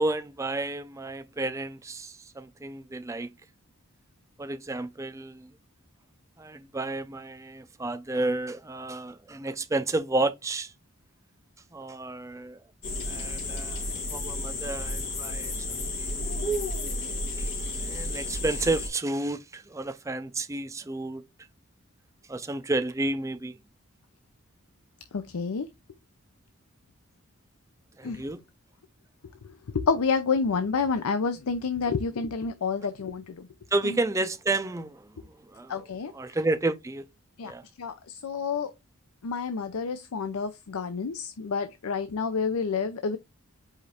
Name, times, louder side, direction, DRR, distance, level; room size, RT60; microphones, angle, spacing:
voice 1, 0.0-3.3 4.4-5.5 6.4-10.7 11.7-12.6 13.0-13.8 14.1-16.5 17.4-21.2 22.3-23.6 28.0-28.4 33.7-37.1 37.4-37.6, right 2 dB, 15° right, 0.4 m, -31 dB
sound 1, 12.8-18.9, left 1 dB, 55° left, 2.5 m, -32 dB
voice 2, 25.1-25.7 28.0-28.2 29.7-33.3 33.8-33.9 35.7-36.1 37.4-37.5 37.8-38.7 39.2-43.2, left 5 dB, 80° left, 0.5 m, -29 dB
5.0 x 2.5 x 4.2 m
head